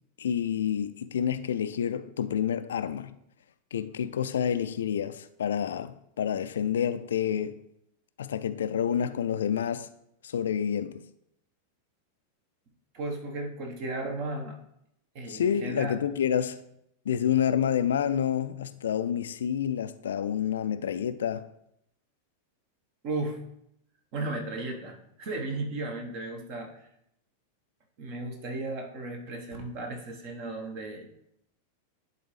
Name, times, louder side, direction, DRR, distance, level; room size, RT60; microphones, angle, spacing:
voice 1, 0.2-3.1 3.7-7.6 8.2-9.9 10.2-11.0 15.3-16.6 17.1-21.5, left 8 dB, 65° left, 0.3 m, -28 dB
voice 2, 12.9-14.6 15.1-15.9 23.0-23.4 24.1-26.8 28.0-31.0, right 2 dB, 45° right, 1.2 m, -35 dB
11.0 x 3.9 x 3.2 m
figure-of-eight pair, 90°, 0 cm